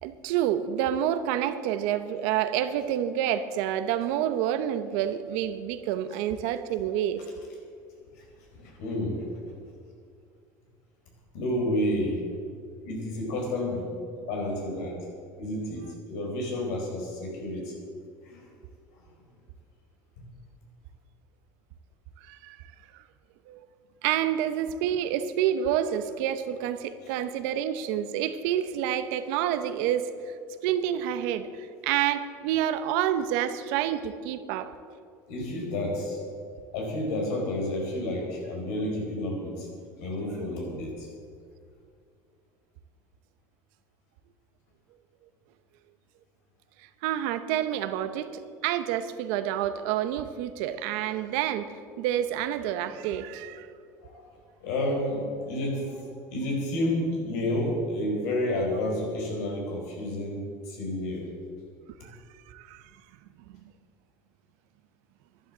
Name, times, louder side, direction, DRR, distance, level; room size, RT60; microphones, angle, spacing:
voice 1, 0.0-7.2 22.2-22.6 23.5-23.7 24.0-30.1 30.6-34.7 47.0-48.3 48.6-53.7 62.0-62.1 62.5-62.8 63.5-63.6, right 10 dB, 80° right, 11 dB, 0.9 m, -28 dB
voice 2, 8.5-9.4 11.3-12.4 12.8-13.9 14.1-15.0 15.4-17.8 18.2-18.4 20.2-20.3 27.0-27.1 35.3-36.2 36.7-39.7 40.0-41.1 54.0-54.3 54.6-61.3, left 1 dB, 90° left, 0 dB, 4.5 m, -30 dB
11.5 x 11.0 x 7.4 m, 2.3 s
cardioid pair, 130°, 8 cm